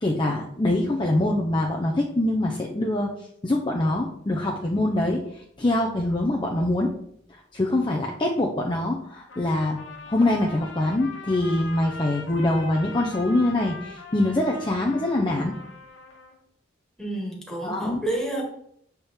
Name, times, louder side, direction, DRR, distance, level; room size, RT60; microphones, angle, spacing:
voice 1, 0.0-3.1 3.4-6.9 7.3-9.8 10.1-15.5 17.6-18.0, left 1 dB, 25° left, -1 dB, 0.6 m, -24 dB
Trumpet, 9.3-16.4, left 3 dB, 80° left, 1.0 m, -41 dB
voice 2, 17.0-18.4, right 1 dB, 5° left, -2 dB, 1.5 m, -29 dB
7.0 x 4.4 x 3.6 m, 0.69 s
head